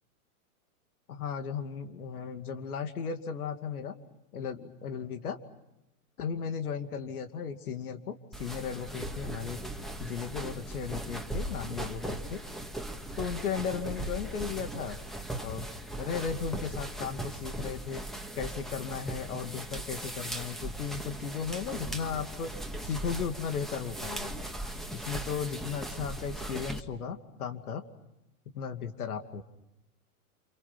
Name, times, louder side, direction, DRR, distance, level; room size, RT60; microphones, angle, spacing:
voice 1, 1.1-3.9 4.3-5.4 6.2-9.6 10.0-12.4 13.2-15.0 15.4-15.7 16.0-18.1 18.4-22.5 22.8-24.4 24.9-27.8 28.5-29.4, left 6 dB, 80° left, 8 dB, 2.6 m, -36 dB
sound 1, 8.3-26.8, right 1 dB, ahead, 2.0 m, -38 dB
29.5 x 29.0 x 6.0 m, 0.91 s
hypercardioid pair, 105°, 44 cm